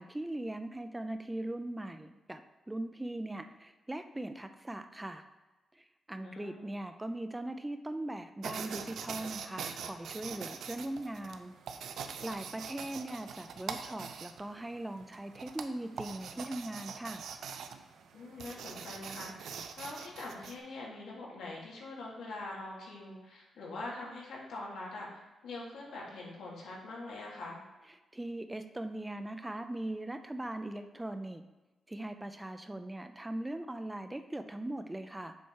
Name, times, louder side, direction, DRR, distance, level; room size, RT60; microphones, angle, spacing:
voice 1, 0.0-2.4 2.7-5.2 5.7-11.5 12.2-17.2 28.1-31.4 31.9-35.3, right 1 dB, 10° right, 8 dB, 0.3 m, -40 dB
voice 2, 6.2-6.7 18.1-27.6, left 2 dB, 80° left, -3 dB, 2.1 m, -44 dB
sound 1, 8.4-20.6, right 6 dB, 70° right, 0.5 m, -44 dB
7.0 x 4.6 x 4.6 m, 1.1 s
wide cardioid pair, 170°, 0 cm